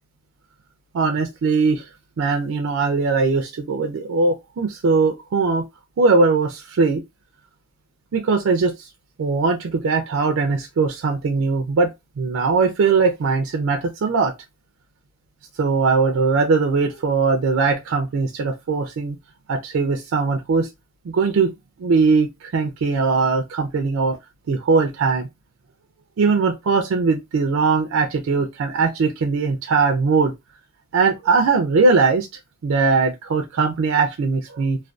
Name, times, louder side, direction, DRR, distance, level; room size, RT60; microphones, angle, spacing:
voice 1, 0.9-1.8 2.2-5.6 6.0-7.0 8.1-8.7 9.2-11.9 12.2-14.3 15.6-19.1 19.5-20.7 21.1-21.5 21.8-22.3 22.5-24.2 24.5-25.3 26.2-30.3 30.9-32.3 32.6-34.8, right 4 dB, 70° right, 0.4 m, -20 dB
2.5 x 2.2 x 2.2 m
head